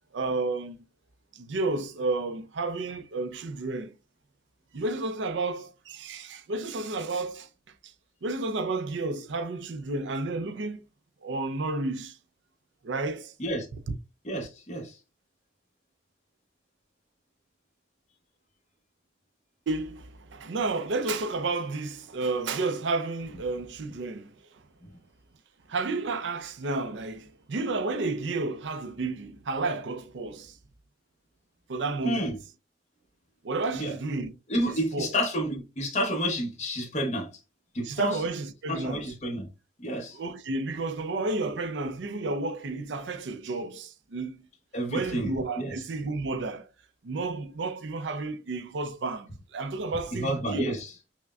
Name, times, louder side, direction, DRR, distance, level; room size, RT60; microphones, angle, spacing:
voice 1, 0.1-0.8 1.3-3.9 4.7-7.5 7.8-7.9 8.2-10.8 11.2-12.2 12.8-13.3 13.9-14.0 19.7-24.4 25.7-30.6 31.7-32.3 33.4-34.3 34.6-35.1 37.8-39.0 40.1-44.4 44.9-46.7 47.0-50.7, right 3 dB, 85° right, 0.5 m, -31 dB
voice 2, 14.2-15.0 24.8-24.9 32.0-32.4 33.7-33.9 34.5-37.3 37.7-38.2 38.7-39.5 39.8-40.2 44.7-45.8 50.1-50.9, equal, 40° left, 0.9 m, -30 dB
5.8 x 2.1 x 2.3 m
head